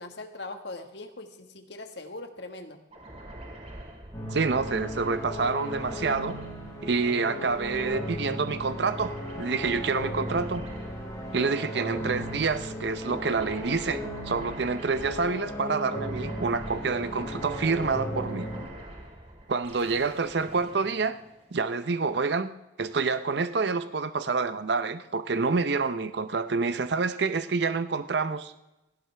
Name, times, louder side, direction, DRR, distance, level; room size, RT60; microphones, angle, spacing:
voice 1, 0.0-2.8, left 2 dB, 65° left, 6 dB, 1.5 m, -41 dB
sound 1, 2.9-21.8, right 1 dB, 30° right, 2.3 m, -44 dB
sound 2, 4.1-18.6, equal, 20° left, 5.1 m, -36 dB
voice 2, 4.3-6.4 6.8-10.6 11.3-18.5 19.5-21.2 21.5-22.5 22.8-28.5, right 4 dB, 60° right, 11 dB, 0.6 m, -27 dB
17.5 x 15.5 x 3.4 m, 0.97 s
head